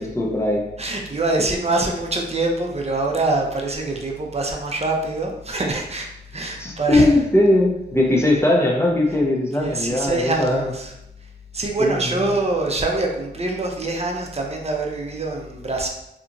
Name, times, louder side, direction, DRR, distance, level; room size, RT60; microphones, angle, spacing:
voice 1, 0.0-0.7 6.6-10.7 11.8-12.4, left 1 dB, 15° left, -2 dB, 0.7 m, -19 dB
voice 2, 0.8-7.1 9.6-10.9 11.5-15.9, right 2 dB, 35° right, 1 dB, 0.6 m, -24 dB
2.9 x 2.3 x 2.6 m, 0.84 s
cardioid pair, 45°, 19 cm